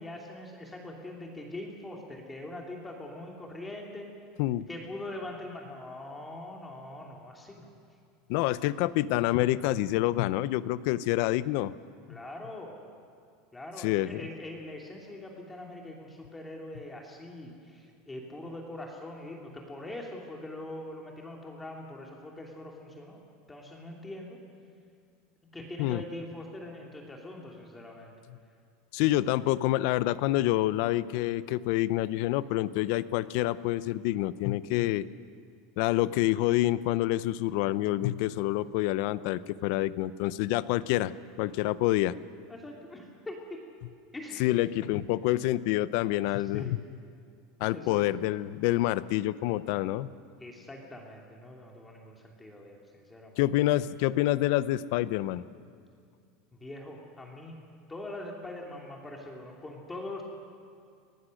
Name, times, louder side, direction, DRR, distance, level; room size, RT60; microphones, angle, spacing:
voice 1, 0.0-4.1 4.7-7.7 12.1-12.8 13.5-23.2 23.5-24.4 25.5-28.1 42.5-43.6 44.1-44.5 46.5-46.8 47.7-48.1 50.4-53.4 56.5-57.6 57.9-60.2, left 1 dB, 10° left, 0 dB, 2.7 m, -42 dB
voice 2, 8.3-11.7 13.8-14.2 25.8-26.0 28.9-35.0 35.8-41.1 41.4-42.2 44.4-46.8 47.6-50.1 53.4-55.4, left 15 dB, 65° left, 17 dB, 0.6 m, -27 dB
24.5 x 18.0 x 6.4 m, 2.3 s
supercardioid pair, 135°, 0 cm